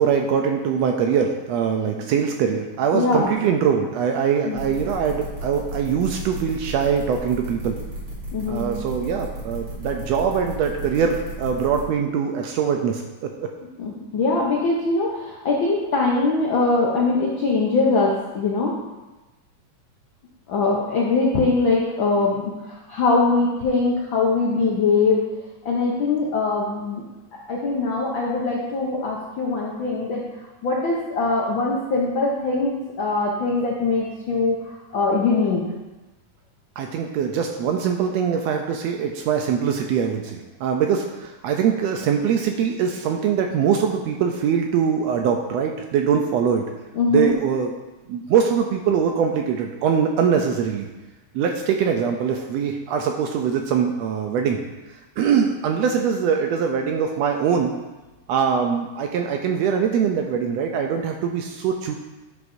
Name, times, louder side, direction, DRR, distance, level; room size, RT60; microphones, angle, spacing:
voice 1, 0.0-7.8 8.5-13.5 36.8-46.7 47.1-47.7 48.1-50.9 51.3-54.6 55.2-57.8 58.3-62.0, right 7 dB, 80° right, 3 dB, 1.6 m, -22 dB
voice 2, 2.9-3.3 4.5-4.6 8.3-8.7 13.8-18.7 20.5-22.5 22.9-25.2 25.6-27.0 27.5-30.2 30.6-34.6 34.9-35.7 47.0-47.3, left 3 dB, 85° left, -3 dB, 1.0 m, -22 dB
sound 1, 4.6-11.8, right 1 dB, 35° right, 2.8 m, -34 dB
9.7 x 6.4 x 2.7 m, 1.1 s
omnidirectional pair, 3.4 m